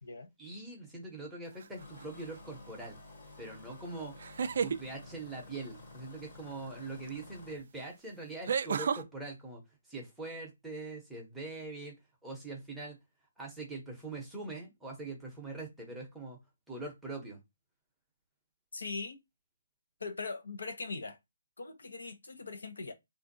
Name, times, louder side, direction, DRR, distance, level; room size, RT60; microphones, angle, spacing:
voice 1, 0.4-3.0 3.4-4.2 4.6-9.6 9.9-11.9 12.2-13.0 13.4-16.4 16.7-17.4, right 3 dB, ahead, 0.8 m, -43 dB
sound 1, 1.6-2.0 4.2-4.8 7.1-7.2 8.5-9.0, right 6 dB, 45° right, 0.3 m, -31 dB
sound 2, 1.8-7.6, left 2 dB, 35° left, 1.0 m, -52 dB
voice 2, 18.7-19.2 20.0-21.2 21.6-22.9, left 4 dB, 85° left, 0.9 m, -40 dB
3.5 x 2.5 x 2.6 m
hypercardioid pair, 170°, 0 cm